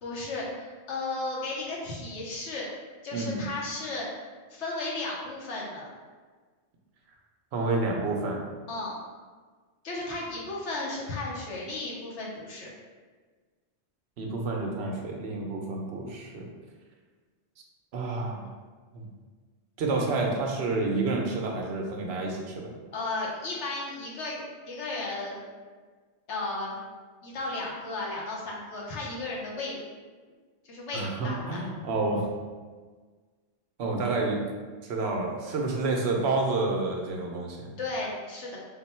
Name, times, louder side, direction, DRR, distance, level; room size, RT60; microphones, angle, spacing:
voice 1, 0.0-2.7 3.0-4.1 4.5-5.9 8.7-9.0 9.8-12.7 22.9-25.4 26.3-26.8 27.2-29.8 30.6-31.6 37.8-38.6, left 2 dB, 85° left, -3 dB, 1.2 m, -34 dB
voice 2, 3.1-3.4 7.5-8.4 14.2-16.5 17.9-18.5 18.9-19.0 19.8-22.7 30.9-32.3 33.8-34.4 34.8-37.7, right 3 dB, 70° right, 1 dB, 0.9 m, -29 dB
3.7 x 2.2 x 4.2 m, 1.5 s
omnidirectional pair, 1.1 m